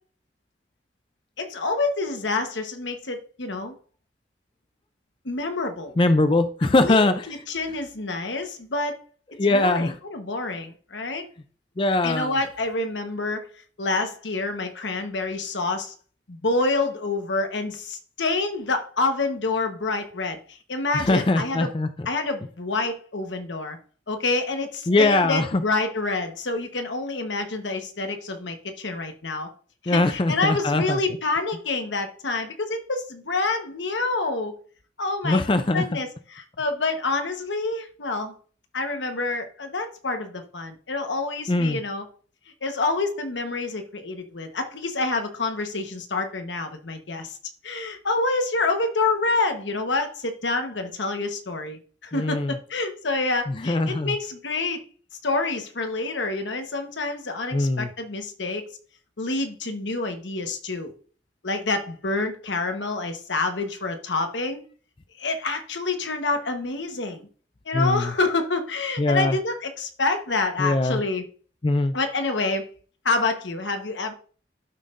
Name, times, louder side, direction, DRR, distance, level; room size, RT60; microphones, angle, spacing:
voice 1, 1.4-3.7 5.2-5.9 6.8-9.0 9.5-11.2 12.0-13.5 13.8-15.9 16.3-20.4 20.7-21.7 22.0-23.8 24.1-29.5 29.8-34.5 35.0-35.4 35.7-38.3 38.7-42.0 42.6-47.3 47.6-54.8 55.2-58.7 59.2-60.9 61.4-64.6 65.2-67.3 67.7-71.2 71.9-72.7 73.0-74.1, left 3 dB, 90° left, 6 dB, 1.2 m, -27 dB
voice 2, 6.0-7.8 9.3-10.0 11.8-12.4 20.9-22.1 24.9-25.6 29.9-31.2 35.2-36.0 41.5-41.8 52.1-52.6 53.5-54.2 57.5-57.9 67.7-68.1 69.0-69.4 70.6-71.0 71.6-71.9, left 2 dB, 30° left, 10 dB, 0.4 m, -22 dB
12.0 x 5.6 x 2.6 m, 0.42 s
head